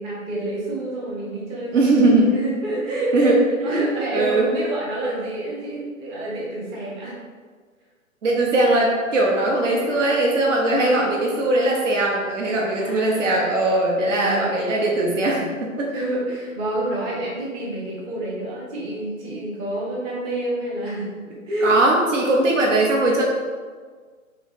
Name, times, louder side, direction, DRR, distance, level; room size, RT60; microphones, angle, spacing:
voice 1, 0.0-3.3 3.6-7.2 9.6-10.2 10.6-11.4 12.4-13.4 14.1-14.6 15.9-21.7, right 1 dB, 15° right, -5 dB, 0.6 m, -29 dB
voice 2, 1.7-2.3 3.1-3.4 3.6-4.5 8.2-15.9 21.6-23.2, right 2 dB, 60° right, -2 dB, 0.9 m, -20 dB
3.2 x 3.1 x 4.1 m, 1.5 s
figure-of-eight pair, 125°, 42 cm